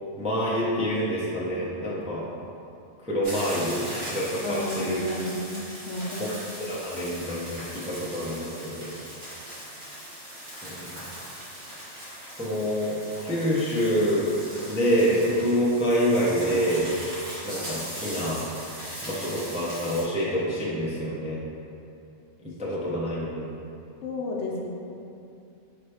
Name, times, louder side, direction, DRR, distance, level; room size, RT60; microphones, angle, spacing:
voice 1, 0.2-2.2 3.0-3.8 4.1-5.0 6.2-6.3 6.6-8.9 10.6-11.0 12.4-12.9 13.2-14.3 14.6-16.8 17.4-18.4 19.0-21.4 22.6-23.5, equal, 10° right, -7 dB, 0.4 m, -26 dB
sound 1, 3.2-20.0, equal, 90° right, 2.0 m, -39 dB
voice 2, 4.4-5.5 5.9-6.3 24.0-24.7, left 2 dB, 75° left, -2 dB, 0.9 m, -32 dB
4.3 x 3.2 x 3.4 m, 2.7 s
omnidirectional pair, 1.2 m